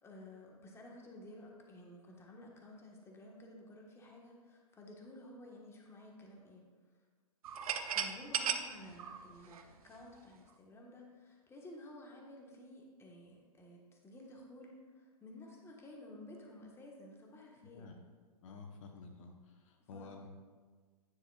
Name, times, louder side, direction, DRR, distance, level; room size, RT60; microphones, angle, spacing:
voice 1, 0.0-6.6 7.9-17.9 19.8-20.1, left 1 dB, 15° left, 0 dB, 1.3 m, -53 dB
sound 1, 7.4-10.2, right 8 dB, 65° right, 0.7 m, -37 dB
voice 2, 17.6-17.9 18.4-20.3, left 4 dB, 55° left, 3 dB, 1.0 m, -51 dB
9.8 x 9.8 x 2.4 m, 1.5 s
hypercardioid pair, 120°, 20 cm